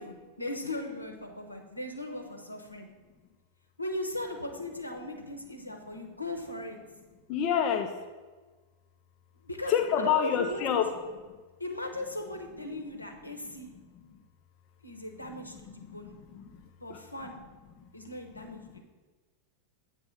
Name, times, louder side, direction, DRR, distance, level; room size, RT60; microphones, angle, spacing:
voice 1, 0.0-2.9 3.8-6.8 9.4-9.7 10.0-10.8 11.6-13.7 14.8-16.1 16.8-17.4 17.9-18.8, left 1 dB, 85° left, 3 dB, 0.7 m, -38 dB
voice 2, 7.3-7.9 9.7-10.9 15.3-16.0 16.3-16.5 16.9-17.0, left 8 dB, 40° left, 5 dB, 0.4 m, -28 dB
7.7 x 3.3 x 5.4 m, 1.3 s
figure-of-eight pair, 90°, 0 cm